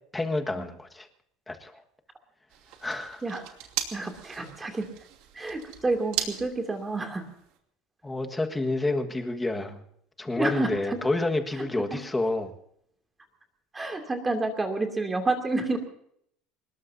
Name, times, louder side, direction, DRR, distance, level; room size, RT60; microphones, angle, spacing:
voice 1, 0.1-1.1 1.5-1.8 2.8-3.2 8.0-9.8 10.2-12.5, left 2 dB, 10° left, 5 dB, 1.5 m, -29 dB
sound 1, 2.5-7.6, right 11 dB, 65° right, 2.7 m, -38 dB
voice 2, 3.9-4.9 5.3-7.3 9.5-9.6 10.4-11.0 11.6-12.0 13.7-15.8, right 2 dB, 10° right, 4 dB, 2.6 m, -29 dB
25.0 x 21.0 x 2.7 m, 0.68 s
cardioid pair, 165°, 0 cm